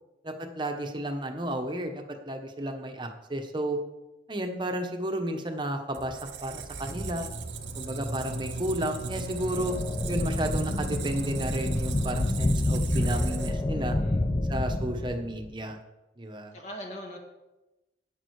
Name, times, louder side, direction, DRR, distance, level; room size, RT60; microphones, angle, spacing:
voice 1, 0.2-3.8 4.3-7.3 7.8-9.8 10.1-14.0 14.5-15.8 16.2-16.5, right 1 dB, 25° right, 5 dB, 1.1 m, -32 dB
Squeak, 5.9-13.8, right 3 dB, 80° right, 1.0 m, -36 dB
sound 1, 9.3-15.5, left 1 dB, 25° left, 0.5 m, -29 dB
voice 2, 13.8-14.2 16.5-17.2, equal, 40° left, 1 dB, 2.0 m, -41 dB
11.0 x 9.0 x 4.8 m, 1.0 s
head